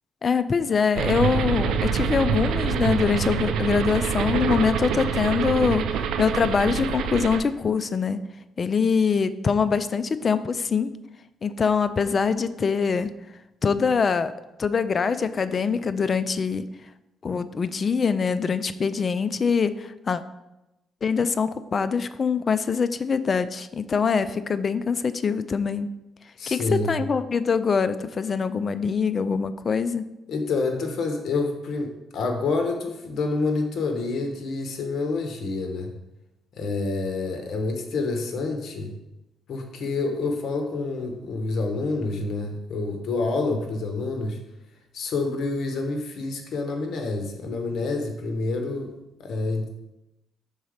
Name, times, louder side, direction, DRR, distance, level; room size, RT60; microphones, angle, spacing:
voice 1, 0.2-8.2 8.6-10.9 11.4-13.1 13.6-14.3 14.6-16.6 17.2-20.2 21.0-25.9 26.5-30.0, left 5 dB, 40° left, 13 dB, 0.4 m, -24 dB
sound 1, 1.0-7.4, right 7 dB, 85° right, 0.4 m, -25 dB
voice 2, 26.4-27.0 30.3-35.9 36.5-38.9 39.5-44.4 44.9-48.9 49.2-49.7, left 3 dB, 65° left, 4 dB, 1.0 m, -28 dB
5.5 x 4.0 x 5.0 m, 0.94 s
cardioid pair, 90°, 0 cm